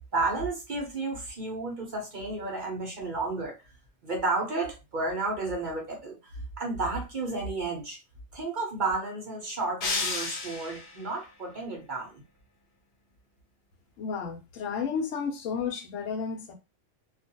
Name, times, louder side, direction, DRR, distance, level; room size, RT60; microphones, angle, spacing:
voice 1, 0.1-3.5 4.0-6.2 6.6-8.0 8.3-12.1, right 3 dB, 45° right, 0.8 m, -32 dB
sound 1, 9.8-11.1, left 4 dB, 60° left, 0.9 m, -31 dB
voice 2, 14.0-16.5, left 6 dB, 85° left, 1.0 m, -32 dB
2.4 x 2.3 x 2.6 m
omnidirectional pair, 1.3 m